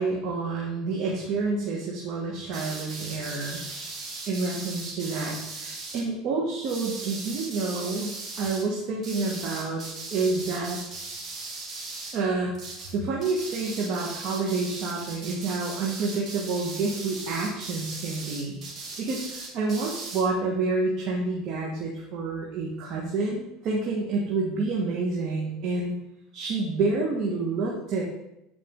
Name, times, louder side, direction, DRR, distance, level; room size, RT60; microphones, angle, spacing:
voice 1, 0.0-3.6 4.3-9.8 10.1-10.8 12.1-12.5 12.9-18.6 19.0-25.9 26.3-28.0, right 3 dB, 55° right, -2 dB, 1.5 m, -28 dB
sound 1, 2.5-6.0 6.6-8.6 9.0-12.2 12.5-12.9 13.2-20.2, right 3 dB, 35° right, 2.5 m, -38 dB
9.1 x 4.8 x 3.8 m, 0.86 s
supercardioid pair, 110°, 0 cm